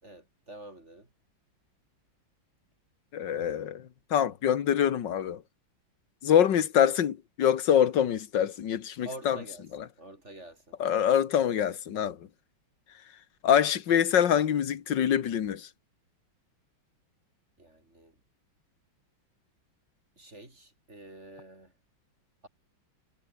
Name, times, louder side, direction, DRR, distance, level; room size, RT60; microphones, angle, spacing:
voice 1, 0.0-1.1 9.0-9.6 10.0-10.7 17.6-18.1 20.2-21.7, right 1 dB, 35° right, 5.5 m, -47 dB
voice 2, 3.1-5.4 6.2-9.4 9.7-9.9 10.8-12.2 13.4-15.7, left 9 dB, 65° left, 2.0 m, -25 dB
omnidirectional pair, 2.2 m